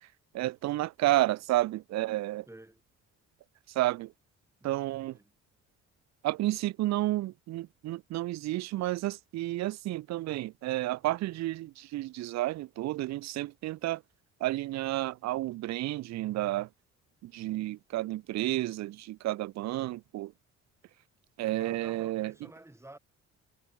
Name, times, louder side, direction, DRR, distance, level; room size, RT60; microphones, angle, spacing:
voice 1, 0.3-2.5 3.7-4.1 4.6-5.2 6.2-14.0 14.4-16.7 17.2-20.3 21.4-22.3, right 16 dB, 65° right, 0.5 m, -31 dB
voice 2, 2.5-2.8 4.6-5.2 19.7-20.0 21.6-23.0, right 1 dB, 10° right, 4.4 m, -51 dB
cardioid pair, 90°, 30 cm